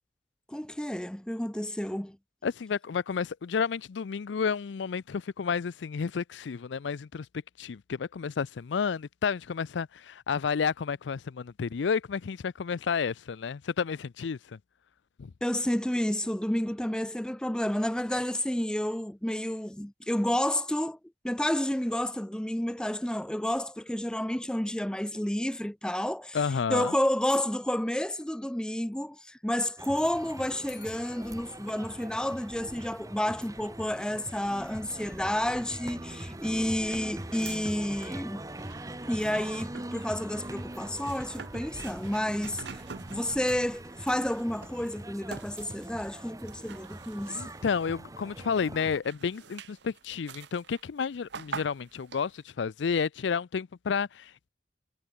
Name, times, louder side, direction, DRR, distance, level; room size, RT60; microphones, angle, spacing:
voice 1, 0.5-2.2 15.4-21.0 21.2-26.4 26.7-38.4 39.1-42.8 43.1-47.5, left 1 dB, 5° left, 0.5 m, -30 dB
voice 2, 2.4-7.3 7.6-14.6 15.2-15.3 26.3-27.0 47.3-54.5, left 6 dB, 85° left, 0.4 m, -31 dB
sound 1, 27.0-29.0 30.7-33.1, left 13 dB, 65° left, 1.5 m, -57 dB
sound 2, 29.8-49.0, right 1 dB, 20° right, 1.3 m, -42 dB
sound 3, 36.1-48.2 48.7-52.4, right 6 dB, 75° right, 0.7 m, -47 dB
head